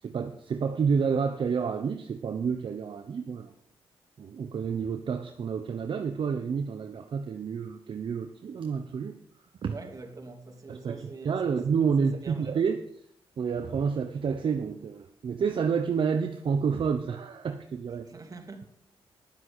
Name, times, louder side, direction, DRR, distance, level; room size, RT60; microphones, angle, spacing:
voice 1, 0.0-3.5 4.2-9.2 9.6-9.8 10.7-12.8 13.4-18.2, right 6 dB, 60° right, 1.0 m, -29 dB
voice 2, 9.7-11.6 12.2-12.6 18.1-18.7, right 3 dB, 35° right, 2.7 m, -44 dB
10.5 x 7.5 x 7.9 m
cardioid pair, 75°, 10 cm